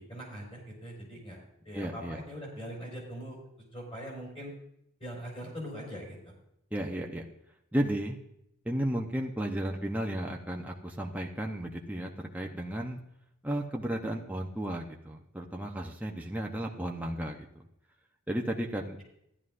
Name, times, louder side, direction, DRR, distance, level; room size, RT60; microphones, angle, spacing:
voice 1, 0.0-1.4 1.6-4.5 5.0-6.3, equal, 25° left, -3 dB, 4.3 m, -42 dB
voice 2, 1.7-2.2 6.7-7.3 7.7-8.2 8.7-13.0 13.4-17.7 18.3-19.0, right 1 dB, 5° right, 0 dB, 0.6 m, -34 dB
15.0 x 11.0 x 2.5 m, 0.79 s
head